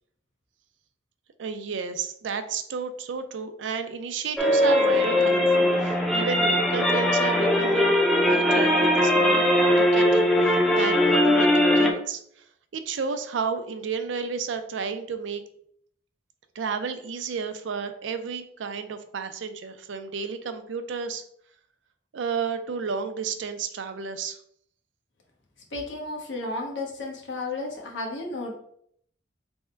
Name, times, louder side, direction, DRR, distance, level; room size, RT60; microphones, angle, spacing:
voice 1, 1.4-9.5 9.8-12.5 12.7-15.4 16.6-21.2 22.1-24.4, right 5 dB, 85° right, 9 dB, 0.4 m, -32 dB
sound 1, 4.4-11.9, left 1 dB, ahead, 0.4 m, -20 dB
voice 2, 25.7-28.6, left 2 dB, 85° left, 0 dB, 1.0 m, -33 dB
3.5 x 2.1 x 4.3 m, 0.67 s
head